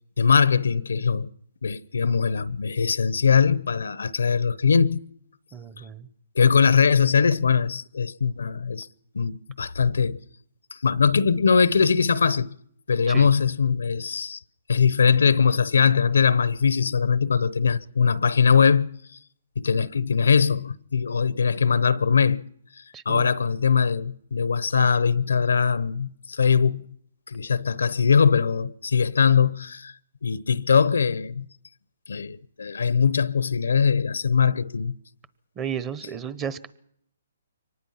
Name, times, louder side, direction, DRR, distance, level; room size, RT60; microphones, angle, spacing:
voice 1, 0.2-1.3 1.6-5.0 6.3-8.9 9.1-10.2 10.7-12.5 12.9-14.4 14.7-18.9 19.6-22.4 23.1-26.8 27.3-29.9 30.2-31.5 32.1-34.9, left 6 dB, 85° left, 0.8 m, -21 dB
voice 2, 5.5-6.1 13.1-13.3 22.9-23.3 35.6-36.7, right 8 dB, 20° right, 1.1 m, -33 dB
24.0 x 19.0 x 5.8 m
hypercardioid pair, 155°, 0 cm